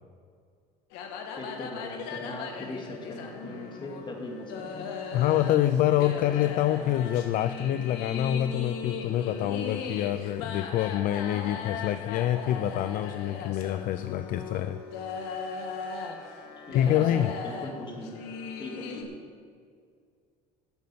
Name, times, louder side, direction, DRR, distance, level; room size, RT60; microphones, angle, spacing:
sound 1, 0.9-19.0, left 5 dB, 80° left, 1.5 m, -38 dB
voice 1, 1.4-4.9 16.7-18.2 18.6-19.2, left 1 dB, 25° left, 2 dB, 2.2 m, -40 dB
voice 2, 5.1-14.8 16.7-17.3, left 12 dB, 55° left, 12 dB, 0.4 m, -26 dB
10.5 x 6.5 x 8.6 m, 2.2 s
cardioid pair, 115°, 17 cm